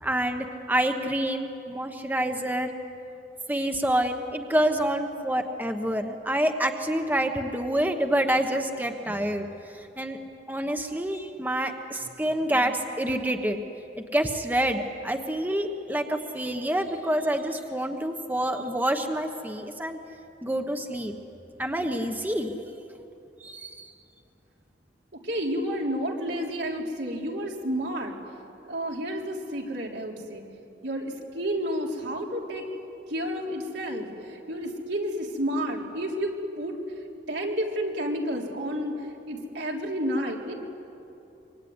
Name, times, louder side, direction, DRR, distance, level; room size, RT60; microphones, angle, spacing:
voice 1, 0.0-2.7 3.5-9.5 10.0-10.2 10.5-13.6 14.1-20.0 20.4-21.1 21.6-22.5 23.4-23.9, right 1 dB, 10° right, 5 dB, 1.1 m, -27 dB
voice 2, 25.1-28.2 28.6-30.4 30.8-32.7 33.1-36.8 37.3-40.6, equal, 80° right, -1 dB, 3.8 m, -31 dB
25.5 x 24.0 x 9.7 m, 2.8 s
head